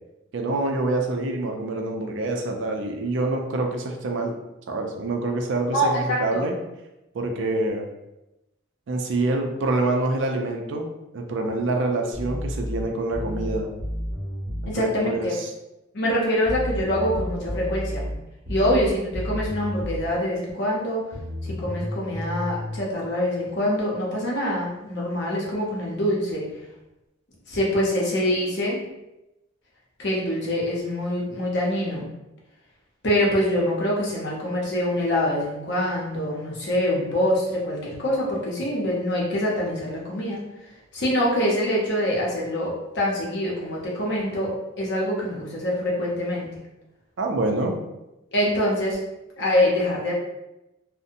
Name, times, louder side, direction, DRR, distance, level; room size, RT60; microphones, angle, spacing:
voice 1, 0.3-4.4 4.7-6.6 7.1-7.9 8.9-10.9 11.1-13.7 14.6-15.5 47.2-47.7, right 2 dB, 60° right, 2 dB, 0.4 m, -26 dB
voice 2, 5.7-6.5 14.7-15.4 15.9-18.1 18.5-21.0 21.4-26.4 27.5-28.8 30.0-32.1 33.0-40.4 40.9-46.5 48.3-49.0 49.4-50.1, left 1 dB, 55° left, -3 dB, 0.7 m, -25 dB
sound 1, 12.1-14.7 16.5-20.1 21.1-22.8, equal, 30° right, 0.9 m, -31 dB
2.6 x 2.1 x 2.5 m, 0.94 s
head